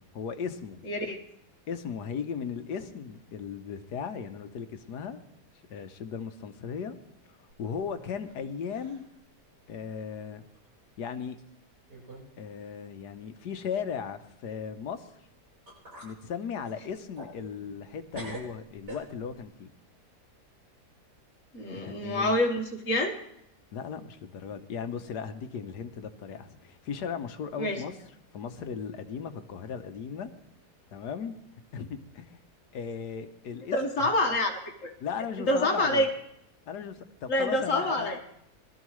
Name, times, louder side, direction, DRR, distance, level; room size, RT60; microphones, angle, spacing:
voice 1, 0.1-0.8 1.7-5.2 5.7-7.0 7.6-9.1 9.7-10.4 11.0-11.4 12.4-15.1 16.0-19.7 21.7-22.4 23.7-27.9 28.3-30.3 30.9-31.3 31.7-32.4 32.7-34.1 35.0-36.1 36.7-38.2, left 6 dB, 75° left, 9 dB, 1.5 m, -37 dB
voice 2, 0.9-1.2 21.5-23.2 27.6-27.8 33.7-34.9 35.4-36.1 37.3-38.2, left 1 dB, 50° left, 3 dB, 1.8 m, -27 dB
sound 1, 7.5-8.4 8.7-9.1 9.6-9.7 10.5-10.7 11.4-11.5 11.9-12.3 12.6-12.7 15.2-15.3 15.7-16.2 16.6-17.9 18.1-19.4, right 1 dB, 80° right, 7.7 m, -45 dB
20.5 x 13.0 x 3.1 m, 0.75 s
omnidirectional pair, 1.8 m